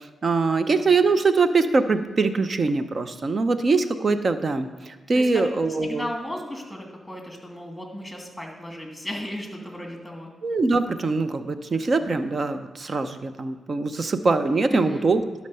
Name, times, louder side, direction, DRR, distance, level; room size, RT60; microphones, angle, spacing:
voice 1, 0.0-6.1 10.4-15.2, right 3 dB, 50° right, 10 dB, 0.7 m, -23 dB
voice 2, 5.8-10.3 14.7-15.1, left 1 dB, 5° left, 1 dB, 2.7 m, -35 dB
12.0 x 4.4 x 5.6 m, 1.4 s
supercardioid pair, 55°, 0 cm